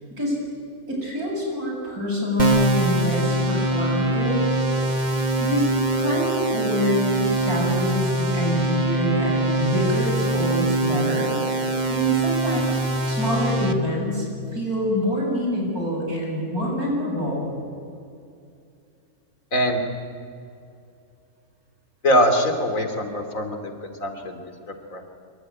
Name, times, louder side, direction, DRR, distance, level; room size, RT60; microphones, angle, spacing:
voice 1, 0.9-4.4 5.4-5.7 6.0-11.3 11.9-14.2 14.5-17.5, equal, 75° right, -1 dB, 8.3 m, -25 dB
sound 1, 2.4-13.7, right 2 dB, 30° right, 1.6 m, -23 dB
voice 2, 22.0-25.0, equal, 60° left, 6 dB, 3.3 m, -23 dB
26.0 x 24.0 x 9.7 m, 2.5 s
omnidirectional pair, 1.6 m